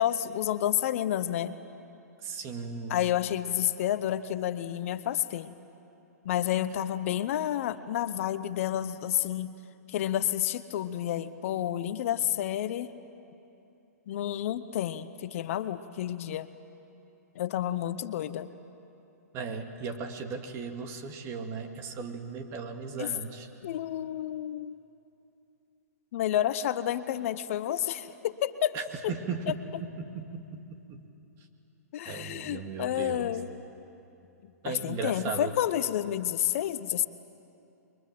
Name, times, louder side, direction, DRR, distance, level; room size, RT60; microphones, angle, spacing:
voice 1, 0.0-1.5 2.9-5.6 6.2-9.5 9.9-12.9 14.1-16.5 17.3-18.5 23.0-23.1 23.6-24.8 26.1-28.8 29.0-29.1 31.9-33.5 34.6-37.1, left 12 dB, 55° left, 13 dB, 0.9 m, -30 dB
voice 2, 2.2-3.0 19.3-23.5 28.7-31.0 32.1-33.4 34.6-35.5, right 5 dB, 30° right, 5 dB, 2.3 m, -37 dB
29.5 x 23.0 x 7.7 m, 2.8 s
hypercardioid pair, 125°, 9 cm